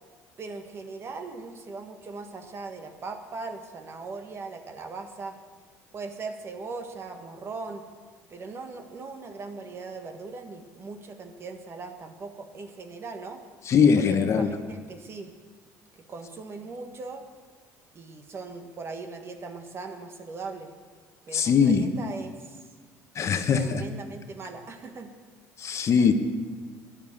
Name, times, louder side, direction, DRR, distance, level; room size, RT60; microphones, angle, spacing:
voice 1, 0.4-5.4 5.9-7.9 8.3-13.4 14.1-15.3 15.9-17.2 17.9-20.7 21.3-22.6 23.5-25.1 26.0-26.1, right 3 dB, 40° right, 6 dB, 1.6 m, -39 dB
voice 2, 13.6-14.5 21.3-21.9 23.1-23.8 25.6-26.1, left 6 dB, 45° left, 7 dB, 1.1 m, -21 dB
13.0 x 10.5 x 7.3 m, 1.5 s
cardioid pair, 105°, 7 cm